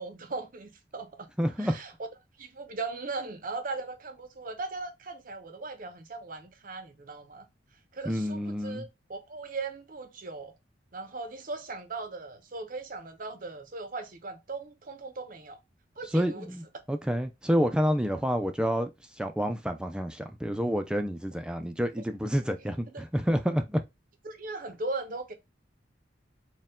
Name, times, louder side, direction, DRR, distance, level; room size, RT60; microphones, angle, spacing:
voice 1, 0.0-1.3 1.6-1.9 2.4-7.5 7.9-10.5 10.9-15.6 16.0-16.5 22.9-23.0 24.2-25.3, right 3 dB, 45° right, 0.7 m, -38 dB
voice 2, 1.4-1.8 8.1-8.9 16.1-18.9 19.2-23.8, equal, 5° right, 0.4 m, -28 dB
4.4 x 2.3 x 3.6 m
head